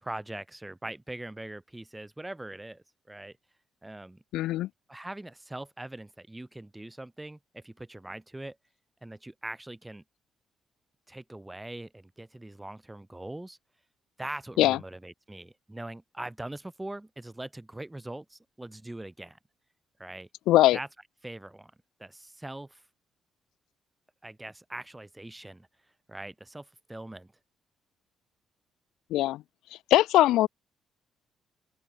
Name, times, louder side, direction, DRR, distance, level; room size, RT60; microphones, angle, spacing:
voice 1, 0.0-3.4 3.8-4.2 4.9-8.6 9.0-10.0 11.1-13.6 14.2-19.4 20.0-20.3 20.7-20.9 21.2-21.7 22.0-22.8 24.2-25.7 26.1-27.3, right 1 dB, 10° right, 1.9 m, -41 dB
voice 2, 4.3-4.7 14.6-14.8 20.5-20.8 29.1-29.4 29.9-30.5, left 15 dB, 90° left, 0.4 m, -21 dB
open air
cardioid pair, 90°, 0 cm